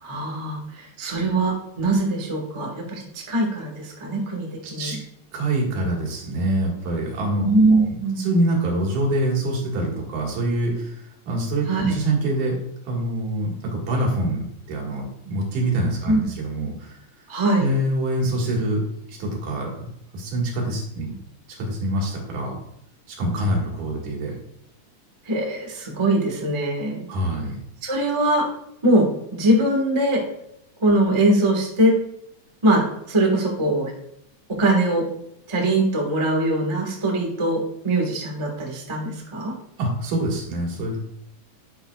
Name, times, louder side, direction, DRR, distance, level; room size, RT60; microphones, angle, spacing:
voice 1, 0.0-5.0 7.4-8.2 11.7-11.9 16.1-16.3 17.3-17.7 25.2-27.1 27.8-28.5 28.8-30.2 30.8-32.0 32.6-33.9 34.5-35.1 35.5-39.5, right 1 dB, 25° right, 0 dB, 0.6 m, -22 dB
voice 2, 4.6-5.0 5.3-7.8 8.2-12.6 12.8-17.0 17.6-18.8 19.1-19.9 20.1-21.1 21.6-22.6 23.1-24.3 27.1-27.5 39.8-41.0, right 1 dB, 85° right, -1 dB, 3.2 m, -25 dB
9.9 x 7.2 x 2.4 m, 0.75 s
omnidirectional pair, 3.4 m